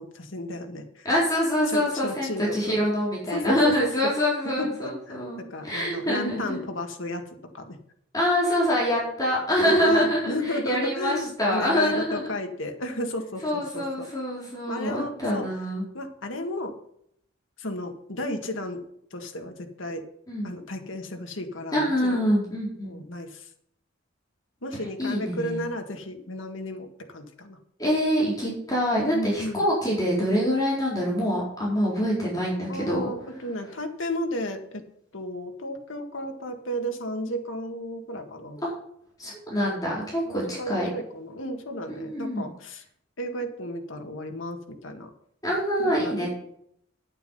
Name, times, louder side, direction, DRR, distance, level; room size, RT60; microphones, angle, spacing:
voice 1, 0.0-1.1 1.7-2.8 3.3-4.1 4.4-7.2 7.5-7.8 9.6-14.1 14.7-15.5 15.9-16.8 17.6-18.8 19.1-20.1 20.4-22.3 22.8-23.5 24.6-27.6 29.1-29.7 32.7-34.8 35.1-38.6 40.3-42.8 43.2-45.1 45.8-46.3, left 1 dB, 80° left, 4 dB, 1.8 m, -33 dB
voice 2, 1.0-6.6 8.1-12.3 13.4-15.8 20.3-20.5 21.7-23.0 25.0-25.5 27.8-33.1 38.6-38.7 39.2-40.9 41.9-42.4 45.4-46.3, equal, 20° left, -5 dB, 4.3 m, -25 dB
9.4 x 8.9 x 5.6 m, 0.69 s
head